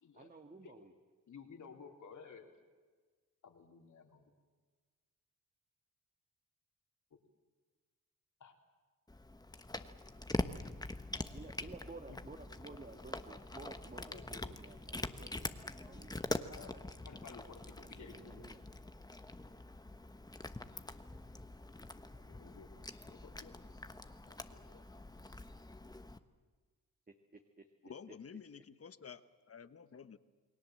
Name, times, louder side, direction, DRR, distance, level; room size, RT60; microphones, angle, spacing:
voice 1, 0.1-0.9 11.3-16.8 17.8-18.6 27.3-27.7, right 3 dB, 25° right, 5 dB, 1.7 m, -54 dB
voice 2, 1.3-2.5 3.4-4.3 7.1-7.2 8.4-8.5 12.1-12.2 14.1-14.5 16.5-18.5 22.2-22.7 23.0-23.7 24.2-24.8, left 6 dB, 60° left, 3 dB, 3.6 m, -55 dB
Cat, 9.1-26.2, left 2 dB, 10° left, 1.2 m, -44 dB
voice 3, 27.8-30.2, left 6 dB, 45° left, 13 dB, 1.2 m, -51 dB
29.0 x 20.5 x 7.7 m, 1.4 s
cardioid pair, 90°, 33 cm